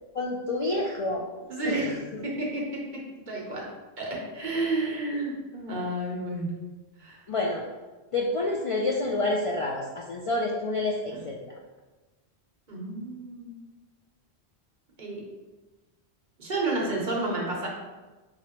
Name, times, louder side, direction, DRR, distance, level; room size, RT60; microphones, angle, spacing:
voice 1, 0.1-1.2 1.6-2.0 7.3-7.6 8.1-11.5, left 2 dB, 55° left, -1 dB, 0.3 m, -28 dB
voice 2, 1.5-1.8 2.2-2.6 3.3-3.7 4.0-6.5 7.0-7.2 11.1-11.2 12.7-13.6 15.0-15.2 16.4-17.7, right 2 dB, 45° right, -3 dB, 1.1 m, -30 dB
5.9 x 3.0 x 2.9 m, 1.2 s
omnidirectional pair, 1.1 m